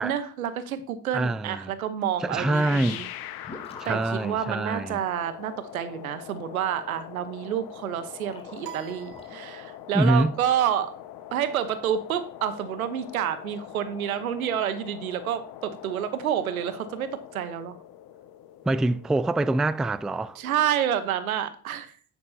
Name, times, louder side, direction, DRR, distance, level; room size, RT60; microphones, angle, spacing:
voice 1, 0.0-3.1 3.4-3.5 3.8-10.9 11.3-17.8 20.4-21.9, right 9 dB, 85° right, 1.1 m, -29 dB
voice 2, 1.1-1.7 2.2-3.0 3.8-5.0 9.9-10.4 18.6-20.4, right 2 dB, ahead, 0.3 m, -25 dB
sound 1, 2.3-21.1, left 12 dB, 60° left, 0.9 m, -43 dB
sound 2, 3.4-5.3 7.9-9.3, left 2 dB, 15° left, 3.1 m, -47 dB
sound 3, 8.6-10.1, right 13 dB, 65° right, 1.0 m, -45 dB
10.0 x 9.3 x 2.8 m
hypercardioid pair, 60°, 41 cm